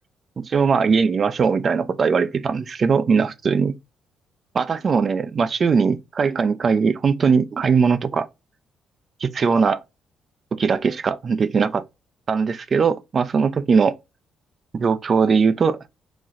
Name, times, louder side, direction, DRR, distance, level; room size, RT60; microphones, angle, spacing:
voice 1, 0.4-3.8 4.5-8.3 9.2-9.8 10.6-11.8 12.3-14.0 14.7-15.8, right 5 dB, 45° right, 0.5 m, -20 dB
4.0 x 2.9 x 2.4 m
cardioid pair, 90°, 0 cm